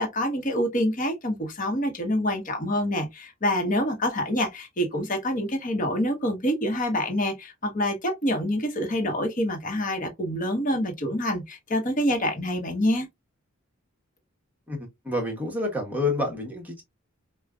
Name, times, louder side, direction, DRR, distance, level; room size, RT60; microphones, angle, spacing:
voice 1, 0.0-13.1, equal, 40° left, 1.1 m, -26 dB
voice 2, 14.7-16.8, left 2 dB, 10° right, 1.2 m, -28 dB
5.0 x 2.3 x 2.3 m
head